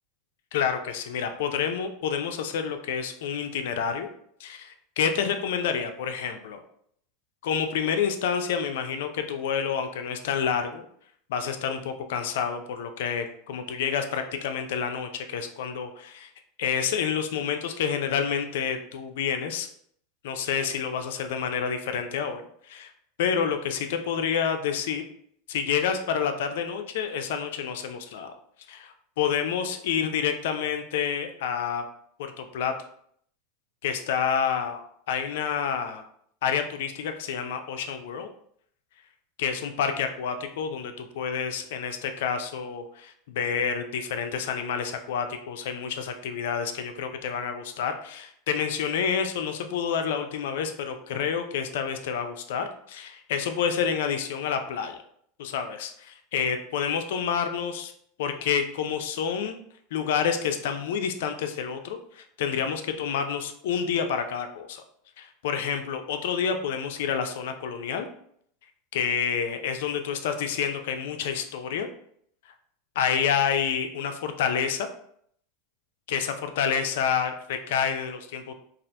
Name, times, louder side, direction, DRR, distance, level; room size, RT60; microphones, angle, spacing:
voice 1, 0.5-4.1 4.4-6.6 7.4-10.8 11.3-16.3 16.6-19.7 20.2-22.9 23.2-25.0 25.5-28.4 28.7-31.8 32.4-32.7 33.8-34.8 35.1-36.0 36.4-38.3 39.4-55.0 55.4-57.9 58.2-59.6 59.9-64.8 65.2-68.1 68.9-71.9 73.0-74.9 76.1-78.5, left 7 dB, 75° left, 7 dB, 0.4 m, -28 dB
2.7 x 2.4 x 3.2 m, 0.67 s
supercardioid pair, 130°, 0 cm